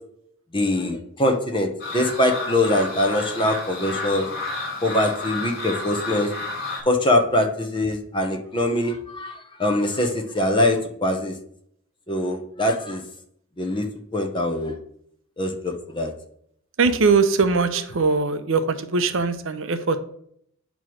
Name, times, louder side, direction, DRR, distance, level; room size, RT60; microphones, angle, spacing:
voice 1, 0.5-1.7 1.9-4.3 4.8-6.3 6.9-11.3 12.1-13.0 13.6-13.9 14.1-14.8 15.4-16.1, left 1 dB, 20° left, 3 dB, 0.9 m, -23 dB
sound 1, 1.8-6.8, left 3 dB, 40° left, 2.6 m, -31 dB
voice 2, 16.8-20.0, right 4 dB, 60° right, 10 dB, 0.6 m, -21 dB
8.8 x 3.1 x 6.2 m, 0.68 s
head